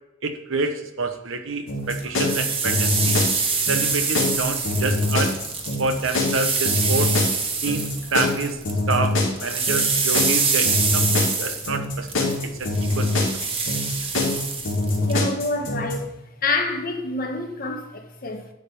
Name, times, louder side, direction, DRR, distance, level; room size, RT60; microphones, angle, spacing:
voice 1, 0.2-3.2 3.7-5.4 5.8-7.2 7.6-8.6 8.9-13.1, right 3 dB, 85° right, 1.1 m, -28 dB
sound 1, 1.7-16.0, left 2 dB, 70° left, 2.5 m, -24 dB
sound 2, 2.0-8.8 9.1-15.2, right 4 dB, 30° right, 1.3 m, -25 dB
voice 2, 15.0-16.1 16.4-18.5, left 2 dB, 50° left, 1.2 m, -27 dB
11.5 x 3.8 x 6.8 m
head